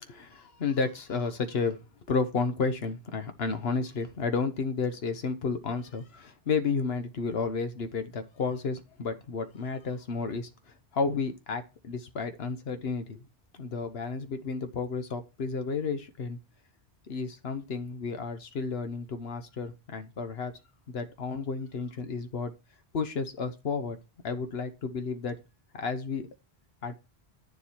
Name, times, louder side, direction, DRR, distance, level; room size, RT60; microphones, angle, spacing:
voice 1, 0.2-1.8 2.1-13.2 13.5-16.4 17.1-20.5 20.9-22.5 22.9-24.0 24.2-25.4 25.7-26.3 26.8-26.9, left 4 dB, 70° left, 9 dB, 1.3 m, -32 dB
8.9 x 7.2 x 4.5 m, 0.30 s
omnidirectional pair, 1.1 m